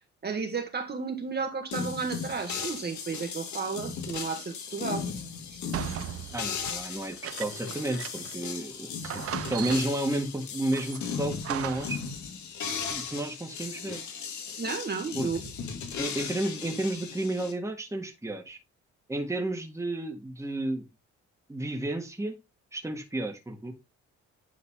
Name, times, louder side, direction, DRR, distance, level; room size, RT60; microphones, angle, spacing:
voice 1, 0.2-5.1 5.5-5.6 14.6-15.4, right 5 dB, 35° right, 1.7 m, -33 dB
sound 1, 1.7-17.5, left 6 dB, 70° left, 1.8 m, -37 dB
sound 2, 5.7-8.5 8.7-8.8 9.0-10.1 10.7-12.1, right 11 dB, 50° right, 0.5 m, -38 dB
voice 2, 6.3-9.2 9.5-12.0 12.9-14.0 15.1-15.3 16.0-18.6 19.1-20.8 21.5-22.4 22.7-23.7, right 1 dB, 10° right, 1.7 m, -32 dB
10.0 x 3.9 x 3.6 m
cardioid pair, 90°, 30 cm